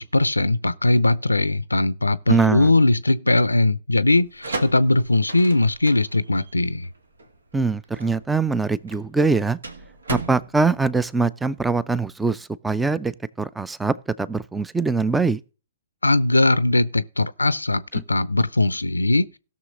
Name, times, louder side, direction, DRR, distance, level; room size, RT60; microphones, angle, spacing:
voice 1, 0.0-6.9 16.0-19.4, left 2 dB, 85° left, 0.5 m, -20 dB
voice 2, 2.3-2.7 7.5-9.6 10.1-13.1 13.4-15.4, right 4 dB, 5° right, 0.5 m, -22 dB
sound 1, 4.2-11.8, right 2 dB, 75° right, 1.6 m, -36 dB
17.0 x 6.4 x 3.8 m
figure-of-eight pair, 120°, 0 cm